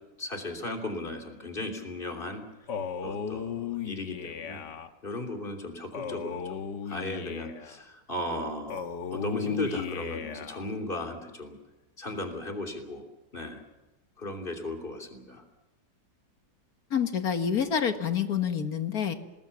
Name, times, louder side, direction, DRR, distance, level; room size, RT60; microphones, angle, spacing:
voice 1, 0.2-2.4 3.0-4.6 5.0-8.8 9.1-11.6 12.0-13.0 13.3-13.6 14.2-15.4, left 1 dB, 30° left, 5 dB, 3.4 m, -36 dB
Male speech man speaking, 2.7-4.9 5.9-7.8 8.7-10.7, left 7 dB, 75° left, 1.9 m, -35 dB
voice 2, 16.9-19.1, left 7 dB, 55° left, 8 dB, 2.0 m, -27 dB
26.5 x 20.0 x 7.2 m, 1.1 s
omnidirectional pair, 1.9 m